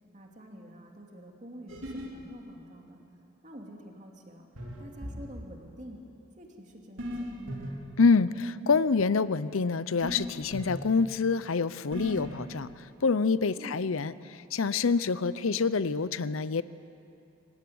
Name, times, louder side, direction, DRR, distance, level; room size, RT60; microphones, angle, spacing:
voice 1, 0.1-3.0 3.4-4.5 4.8-6.0 6.4-7.9 13.6-13.8, equal, 35° right, 1 dB, 2.8 m, -47 dB
sound 1, 1.7-2.1 4.6-5.2 7.0-7.7 10.0-10.7 11.9-12.5, equal, 75° right, 3.6 m, -37 dB
voice 2, 8.0-12.7 13.0-14.1 14.5-16.6, left 4 dB, 80° left, 16 dB, 0.7 m, -26 dB
25.5 x 15.5 x 9.5 m, 2.7 s
head